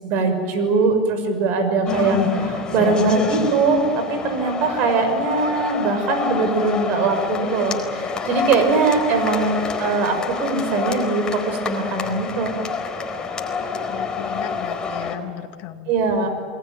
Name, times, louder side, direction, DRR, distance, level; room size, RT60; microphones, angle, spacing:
voice 1, 0.0-12.5 15.9-16.3, right 3 dB, 55° right, 7 dB, 6.1 m, -21 dB
sound 1, 1.9-15.2, left 5 dB, 20° left, 4.3 m, -27 dB
voice 2, 13.9-15.9, left 12 dB, 55° left, 6 dB, 2.5 m, -35 dB
28.5 x 20.5 x 9.2 m, 2.1 s
hypercardioid pair, 100°, 4 cm